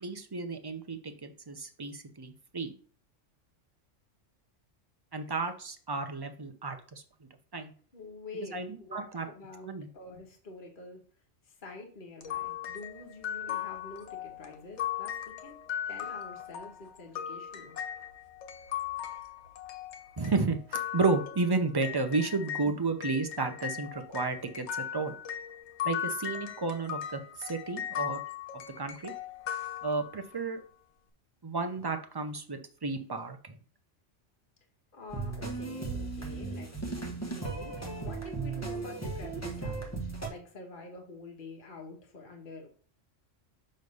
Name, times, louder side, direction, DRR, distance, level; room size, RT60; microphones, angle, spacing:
voice 1, 0.0-2.7 5.1-7.0 7.5-7.7 8.5-9.3 9.6-9.9 20.2-24.7 24.9-25.1 25.8-28.2 28.8-29.1 29.8-30.6 31.4-33.5, right 3 dB, 30° right, 6 dB, 0.5 m, -32 dB
voice 2, 7.9-11.0 11.4-15.6 15.9-17.8 34.9-37.7 38.0-42.7, left 3 dB, 45° left, 1 dB, 1.4 m, -47 dB
sound 1, 12.2-22.7 23.0-30.4, left 10 dB, 70° left, 1.1 m, -38 dB
sound 2, 35.1-40.3, right 3 dB, 15° left, 1.2 m, -36 dB
6.5 x 3.2 x 5.3 m, 0.43 s
omnidirectional pair, 1.3 m